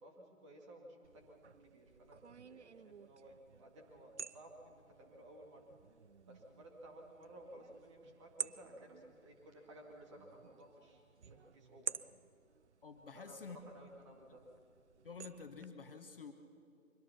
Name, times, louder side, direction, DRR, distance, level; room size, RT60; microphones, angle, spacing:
voice 1, 0.0-2.2 2.4-5.7 6.3-11.0 11.5-12.1 13.1-14.4, right 1 dB, 20° right, 0 dB, 2.2 m, -56 dB
sound 1, 1.0-15.7, right 6 dB, 55° right, 0.6 m, -51 dB
voice 2, 12.8-13.6 14.3-14.4 15.0-16.3, left 5 dB, 40° left, 6 dB, 1.3 m, -49 dB
24.0 x 18.5 x 6.0 m, 2.3 s
figure-of-eight pair, 145°, 42 cm